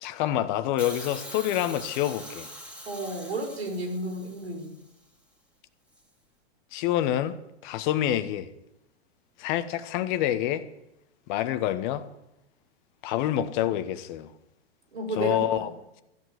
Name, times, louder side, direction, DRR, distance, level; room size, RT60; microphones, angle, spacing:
voice 1, 0.0-2.5 6.7-7.4 7.6-8.5 9.4-10.7 11.3-12.1 13.0-14.3 15.2-15.7, left 12 dB, 50° left, 1.2 m, -27 dB
Hiss, 0.8-4.9 5.9-6.0, equal, 5° right, 2.2 m, -43 dB
voice 2, 2.9-4.7 14.9-15.7, right 1 dB, 85° right, 4.1 m, -32 dB
14.0 x 8.1 x 7.8 m
hypercardioid pair, 115°, 31 cm